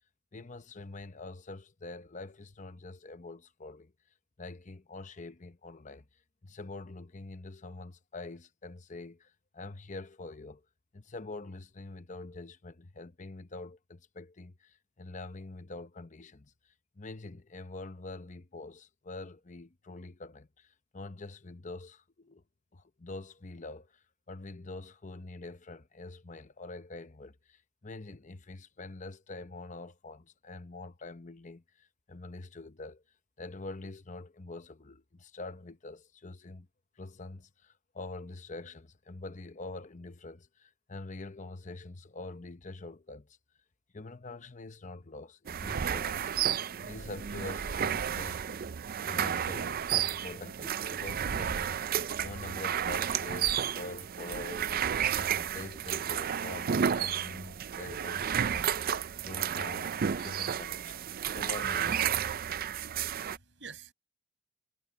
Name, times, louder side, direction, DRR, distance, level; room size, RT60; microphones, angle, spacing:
voice 1, 0.3-3.9 4.4-6.0 6.4-10.6 10.9-22.4 22.7-33.0 33.4-36.7 37.0-43.4 43.9-48.7 49.0-59.0 59.2-62.4, left 2 dB, 40° left, 0.9 m, -45 dB
sound 1, 45.5-63.4, right 8 dB, 50° right, 0.4 m, -32 dB
voice 2, 62.6-63.9, right 6 dB, 70° right, 7.7 m, -51 dB
head